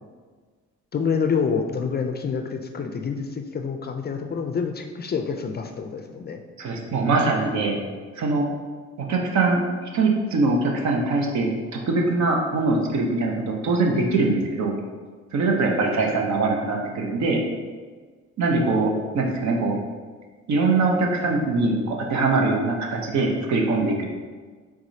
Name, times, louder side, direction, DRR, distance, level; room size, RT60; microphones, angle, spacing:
voice 1, 0.9-6.4, left 5 dB, 35° left, 5 dB, 0.4 m, -27 dB
voice 2, 6.6-7.8 8.2-8.5 9.1-9.6 9.9-14.7 15.3-17.4 18.4-19.8 20.5-24.1, right 3 dB, 65° right, 0 dB, 0.8 m, -22 dB
4.8 x 3.6 x 2.7 m, 1.5 s
cardioid pair, 90°, 30 cm